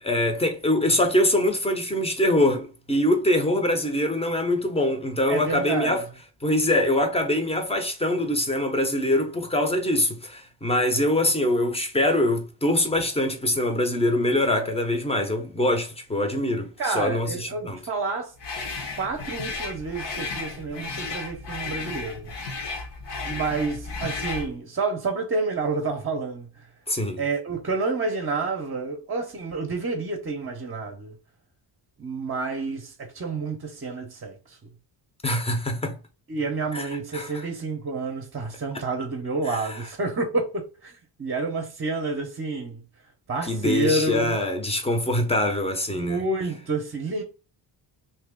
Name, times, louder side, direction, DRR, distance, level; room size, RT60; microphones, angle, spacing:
voice 1, 0.0-6.0 6.4-17.8 26.9-27.2 35.2-36.0 36.7-37.3 39.6-39.7 43.4-46.2, left 1 dB, 15° left, 0.7 m, -24 dB
voice 2, 5.3-6.0 16.8-18.3 19.0-22.3 23.2-26.7 27.2-31.2 32.0-34.6 36.3-42.8 43.3-44.4 45.9-47.2, right 3 dB, 30° right, 0.7 m, -29 dB
sound 1, 18.4-24.5, left 3 dB, 65° left, 1.0 m, -34 dB
2.9 x 2.8 x 3.6 m
wide cardioid pair, 145°, 44 cm